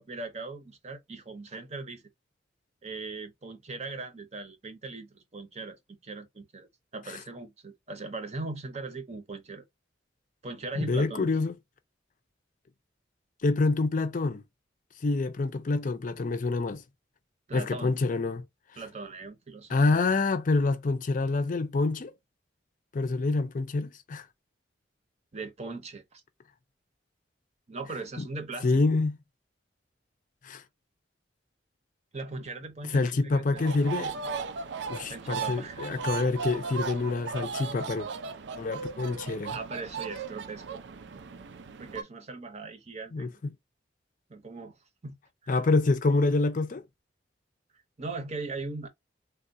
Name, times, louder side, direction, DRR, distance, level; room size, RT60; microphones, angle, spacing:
voice 1, 0.0-2.0 2.8-9.6 10.4-11.3 17.5-18.0 18.8-19.8 25.3-26.2 27.7-28.8 32.1-33.6 35.1-35.8 39.5-40.8 41.8-43.3 44.3-44.7 45.0-45.2 45.4-45.5 48.0-48.9, right 3 dB, 40° right, 0.7 m, -39 dB
voice 2, 10.7-11.6 13.4-14.4 15.0-16.8 17.5-18.4 19.7-22.1 22.9-24.3 28.2-28.3 28.6-29.2 30.4-30.6 32.8-34.1 34.9-38.1 38.6-39.6 43.1-43.3 45.5-46.8, left 3 dB, 45° left, 0.5 m, -27 dB
sound 1, 33.5-42.0, right 5 dB, 70° right, 0.5 m, -37 dB
3.4 x 2.3 x 2.6 m
head